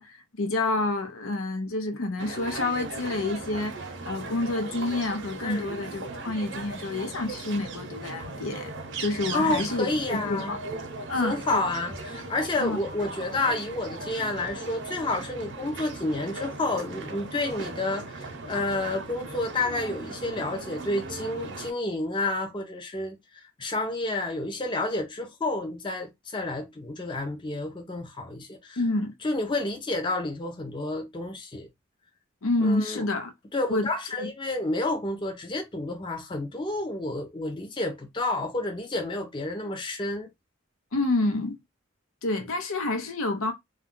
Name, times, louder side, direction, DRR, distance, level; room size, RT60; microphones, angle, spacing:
voice 1, 0.0-3.7 4.0-8.7 9.0-10.6 11.1-11.6 12.6-12.8 28.8-29.1 32.4-33.3 33.7-33.9 34.2-34.3 40.9-41.6 42.2-43.5, left 2 dB, 85° left, 0.7 m, -28 dB
sound 1, 2.2-21.7, right 3 dB, 60° right, 0.7 m, -38 dB
voice 2, 9.3-10.6 11.1-23.2 23.6-28.8 29.2-31.7 32.6-33.0 33.5-40.3, left 2 dB, 25° left, 0.5 m, -30 dB
2.3 x 2.2 x 3.6 m
head